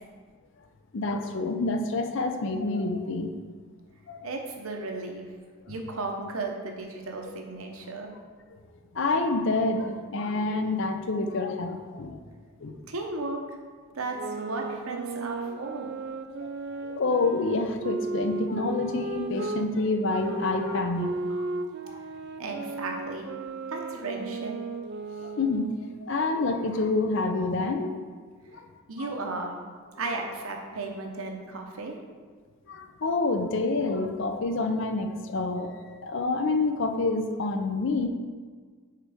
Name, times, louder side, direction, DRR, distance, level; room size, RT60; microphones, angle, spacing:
voice 1, 0.9-3.3 4.1-4.3 8.9-12.2 12.6-12.8 16.8-21.5 21.9-22.0 25.2-25.7 26.0-27.9 28.5-28.6 29.0-29.1 32.7-38.1, left 3 dB, 55° left, 6 dB, 0.5 m, -28 dB
voice 2, 4.2-5.2 5.7-8.1 12.9-13.4 13.9-15.9 22.4-23.3 23.7-24.5 28.9-29.5 30.0-32.0, right 3 dB, 75° right, 2 dB, 0.8 m, -35 dB
sound 1, 14.0-19.7 20.2-25.8, right 3 dB, 50° right, 0.3 m, -35 dB
4.8 x 4.5 x 4.9 m, 1.5 s
head